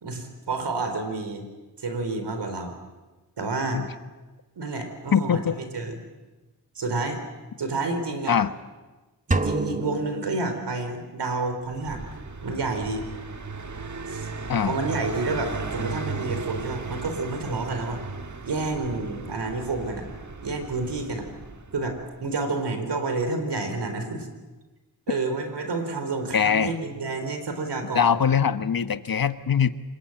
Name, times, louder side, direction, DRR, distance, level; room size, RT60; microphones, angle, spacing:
voice 1, 0.0-1.5 1.8-2.7 3.4-3.8 4.6-6.0 6.8-7.2 7.6-8.4 9.3-12.0 12.4-13.1 14.1-14.3 14.7-18.0 18.4-20.1 20.4-21.3 21.7-24.3 25.1-28.2, right 3 dB, 90° right, 7 dB, 4.1 m, -29 dB
voice 2, 5.1-5.6 8.3-8.5 14.5-14.8 26.3-26.7 27.9-29.7, left 7 dB, 60° left, 11 dB, 1.3 m, -22 dB
sound 1, 9.3-11.3, right 2 dB, 20° right, 1.7 m, -29 dB
Car passing by, 11.6-22.3, right 4 dB, 45° right, 1.7 m, -36 dB
26.0 x 21.0 x 9.1 m, 1.2 s
cardioid pair, 55°, 40 cm